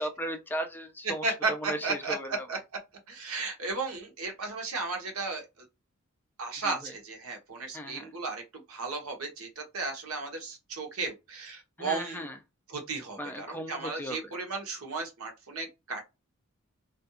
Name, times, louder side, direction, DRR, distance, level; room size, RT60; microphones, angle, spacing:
voice 1, 0.0-2.5 6.6-6.9 7.7-8.1 11.8-12.4 13.2-14.3, equal, 10° left, 0.4 m, -37 dB
voice 2, 1.0-2.6 3.1-5.4 6.4-12.2 12.7-16.0, right 3 dB, 80° right, 0.9 m, -34 dB
2.5 x 2.2 x 2.6 m
head